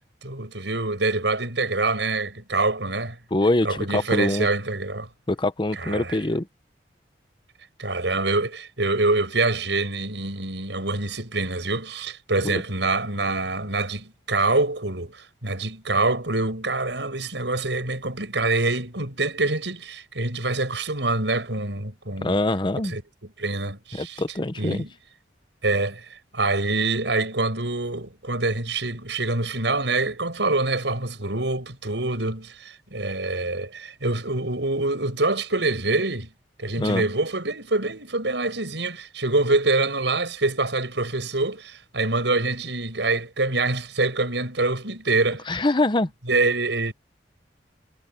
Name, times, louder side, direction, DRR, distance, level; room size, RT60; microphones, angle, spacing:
voice 1, 0.2-3.2 3.6-5.1 5.8-6.2 7.8-22.4 22.8-24.2 24.6-24.9 25.6-26.0 26.3-36.3 36.6-45.4 46.3-46.9, right 2 dB, 85° right, 6.5 m, -25 dB
voice 2, 3.3-4.5 5.3-6.5 12.4-12.6 22.2-22.9 24.0-24.8 36.8-37.0 45.5-46.1, left 2 dB, 25° left, 0.8 m, -24 dB
head